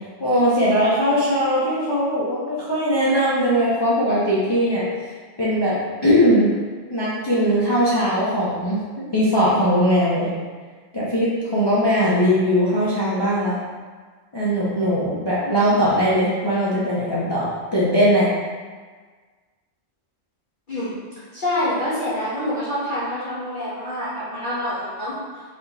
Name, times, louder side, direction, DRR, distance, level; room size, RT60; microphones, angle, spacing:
voice 1, 0.2-4.8 5.4-6.5 6.9-10.3 10.9-13.5 14.3-18.3, equal, 25° left, -9 dB, 0.7 m, -20 dB
voice 2, 21.3-25.1, left 1 dB, 45° left, -11 dB, 1.2 m, -26 dB
4.3 x 3.0 x 3.9 m, 1.5 s
omnidirectional pair, 1.3 m